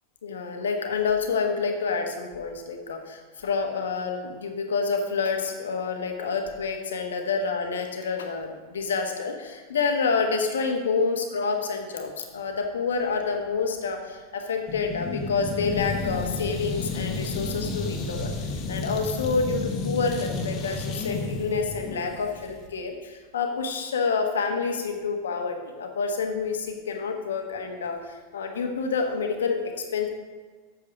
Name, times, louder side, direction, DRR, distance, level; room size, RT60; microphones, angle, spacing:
voice 1, 0.2-29.6 29.9-30.1, left 5 dB, 75° left, 4 dB, 1.2 m, -28 dB
sound 1, 14.7-22.7, left 3 dB, 35° left, 1.5 m, -31 dB
8.6 x 6.5 x 5.2 m, 1.5 s
figure-of-eight pair, 90°, 0 cm